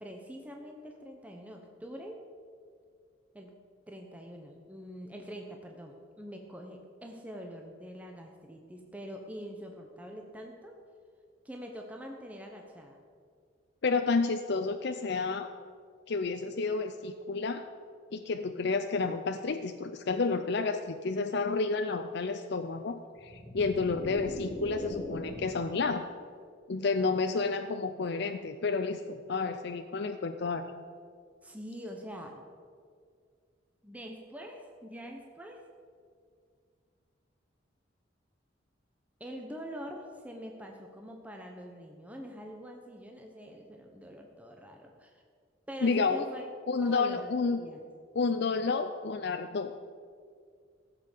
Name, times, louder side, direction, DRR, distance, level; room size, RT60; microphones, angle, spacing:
voice 1, 0.0-2.2 3.3-3.5 3.9-10.8 11.4-13.0 31.4-32.5 33.8-35.6 39.2-45.2 45.7-46.5 46.8-47.8, equal, 10° right, 2 dB, 0.9 m, -44 dB
voice 2, 13.8-15.5 16.1-17.7 18.1-26.1 26.7-30.7 45.8-46.3 46.7-47.6 48.2-49.7, left 4 dB, 60° left, 7 dB, 0.5 m, -30 dB
sound 1, 23.1-25.7, equal, 25° left, 2.8 m, -41 dB
15.5 x 7.6 x 6.7 m, 2.1 s
head